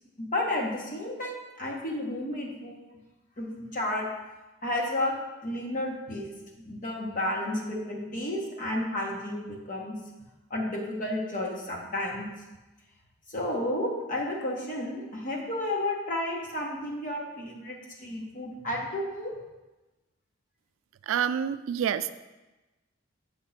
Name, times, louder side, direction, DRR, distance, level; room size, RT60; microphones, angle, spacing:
voice 1, 0.2-2.8 3.4-4.1 4.6-5.2 5.4-6.3 6.6-9.9 10.5-12.3 13.3-19.4, left 1 dB, 40° left, -1 dB, 1.3 m, -32 dB
voice 2, 21.1-22.1, right 8 dB, 75° right, 13 dB, 0.3 m, -27 dB
6.7 x 3.7 x 5.7 m, 1.1 s
head